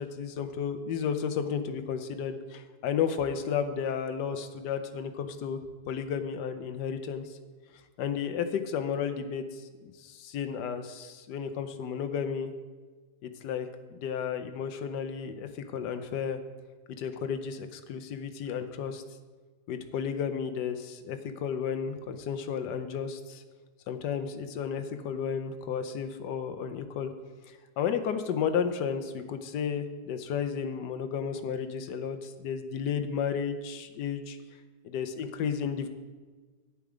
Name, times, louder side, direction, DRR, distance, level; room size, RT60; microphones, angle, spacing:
voice 1, 0.0-5.6 5.9-7.4 8.0-12.5 13.2-16.4 17.0-19.0 19.7-23.4 23.9-27.1 27.5-34.4 34.8-35.9, left 7 dB, 80° left, 8 dB, 1.3 m, -33 dB
9.9 x 7.0 x 4.9 m, 1.4 s
omnidirectional pair, 1.8 m